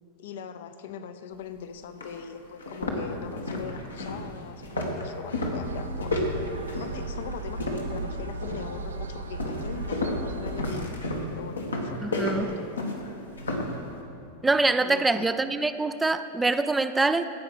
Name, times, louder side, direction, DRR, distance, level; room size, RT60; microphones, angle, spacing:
voice 1, 0.2-6.2 6.8-10.9 11.3-12.1 12.4-12.7 14.8-15.3, left 8 dB, 55° left, 10 dB, 0.7 m, -41 dB
sound 1, 1.4-1.5 2.0-2.1 2.6-8.1 8.4-8.8 9.4-13.8, left 1 dB, 75° left, 1.4 m, -31 dB
sound 2, 5.6-10.9, right 3 dB, 70° right, 0.7 m, -36 dB
voice 2, 12.0-12.5 14.4-17.2, right 3 dB, 10° right, 11 dB, 0.4 m, -24 dB
15.5 x 5.7 x 7.5 m, 2.8 s
figure-of-eight pair, 90°, 0 cm